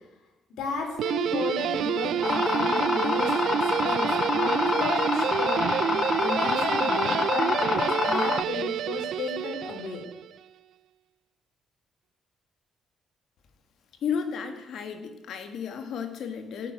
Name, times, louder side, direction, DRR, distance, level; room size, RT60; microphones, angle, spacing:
voice 1, 0.6-10.0, left 4 dB, 85° left, 2 dB, 4.1 m, -34 dB
Guitar, 1.0-10.3, right 10 dB, 75° right, 0.4 m, -28 dB
sound 1, 2.2-8.4, left 5 dB, 40° left, 0.4 m, -27 dB
voice 2, 14.0-16.7, left 7 dB, 70° left, 7 dB, 2.2 m, -33 dB
14.5 x 7.8 x 9.0 m, 1.0 s
cardioid pair, 90°, 0 cm